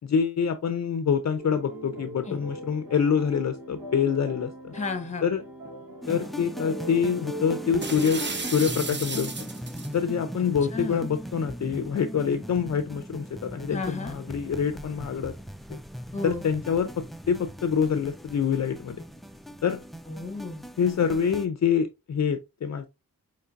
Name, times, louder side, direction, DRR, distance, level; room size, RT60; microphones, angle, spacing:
voice 1, 0.1-4.7 5.2-5.4 6.1-9.5 9.9-15.3 15.7-15.8 16.2-19.0 19.6-19.8 20.8-22.9, left 7 dB, 50° left, 0.5 m, -26 dB
sound 1, 1.4-10.1, right 1 dB, 75° right, 1.3 m, -41 dB
voice 2, 4.7-5.3 10.7-11.0 13.7-14.2 16.1-16.4 20.1-20.6, left 3 dB, 20° left, 1.1 m, -33 dB
sound 2, 6.0-21.5, equal, ahead, 0.4 m, -39 dB
sound 3, 7.8-9.9, right 4 dB, 35° right, 0.7 m, -34 dB
5.6 x 3.1 x 2.5 m
wide cardioid pair, 85°, 34 cm